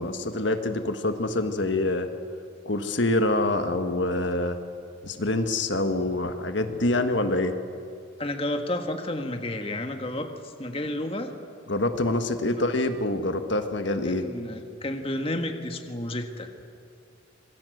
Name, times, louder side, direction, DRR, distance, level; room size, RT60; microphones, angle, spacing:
voice 1, 0.0-2.1 2.7-4.6 5.0-7.5 11.7-14.2, left 2 dB, 65° left, 7 dB, 1.6 m, -26 dB
voice 2, 8.2-11.3 12.3-12.6 14.0-16.5, left 1 dB, 30° left, 5 dB, 1.7 m, -31 dB
26.5 x 22.0 x 8.0 m, 2.5 s
head